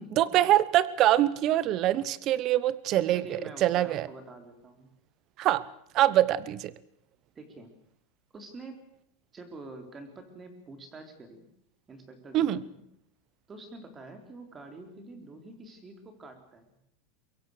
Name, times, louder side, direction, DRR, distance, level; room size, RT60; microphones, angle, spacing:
voice 1, 0.2-4.1 5.4-5.7 5.9-6.7 12.3-12.6, right 13 dB, 35° right, 19 dB, 0.9 m, -24 dB
voice 2, 3.1-4.9 7.4-7.7 8.3-8.7 9.3-11.5 11.9-12.8 13.5-16.8, right 2 dB, 20° right, 6 dB, 4.0 m, -46 dB
24.0 x 22.0 x 6.7 m, 0.73 s
supercardioid pair, 150°, 0 cm